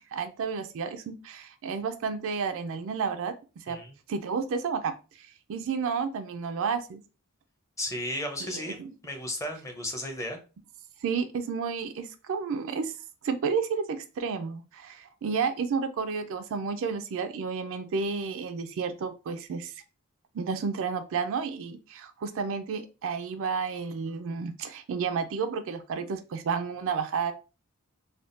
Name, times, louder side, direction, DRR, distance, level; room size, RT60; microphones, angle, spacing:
voice 1, 0.0-3.8 4.1-4.9 5.5-7.0 8.4-8.9 11.0-12.9 13.2-19.7 20.3-27.3, right 5 dB, 60° right, 8 dB, 0.4 m, -31 dB
voice 2, 7.8-10.4, left 1 dB, 15° left, 4 dB, 0.6 m, -34 dB
3.5 x 2.2 x 2.4 m, 0.32 s
head